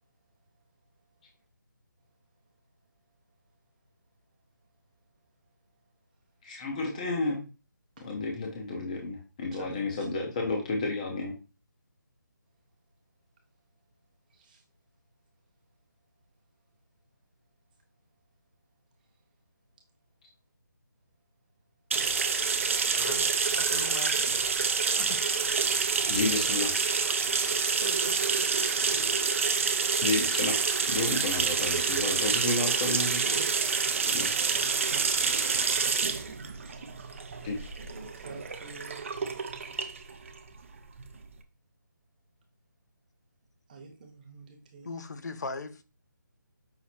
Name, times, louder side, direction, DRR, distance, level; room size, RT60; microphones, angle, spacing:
voice 1, 6.4-7.5 8.0-11.3 26.1-26.7 30.0-30.6 30.9-33.2 37.4-37.7, left 3 dB, 25° left, 0.6 m, -31 dB
voice 2, 9.5-10.1 14.3-14.6 22.9-23.0 27.7-28.5 31.4-32.2 32.9-35.5 35.7-36.9 37.7-39.1 43.7-44.9, right 3 dB, 25° right, 0.9 m, -47 dB
sound 1, 21.9-41.3, right 5 dB, 40° right, 0.5 m, -28 dB
voice 3, 22.9-24.2 24.9-25.2 25.7-25.9 27.0-27.2 44.8-45.8, left 3 dB, 60° left, 0.7 m, -39 dB
5.8 x 2.0 x 4.1 m
figure-of-eight pair, 165°, 11 cm